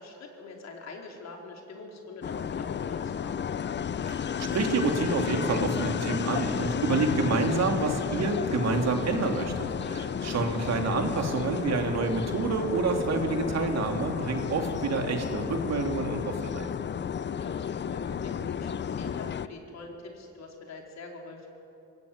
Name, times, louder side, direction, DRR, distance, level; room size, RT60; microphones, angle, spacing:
voice 1, 0.0-3.5 9.6-10.0 17.0-21.5, left 3 dB, 60° left, 1 dB, 4.5 m, -44 dB
sound 1, 2.2-19.5, left 8 dB, 35° left, 0.6 m, -32 dB
voice 2, 4.0-16.7, right 3 dB, 60° right, 3 dB, 3.2 m, -28 dB
24.5 x 15.5 x 9.8 m, 3.0 s
cardioid pair, 90°, 30 cm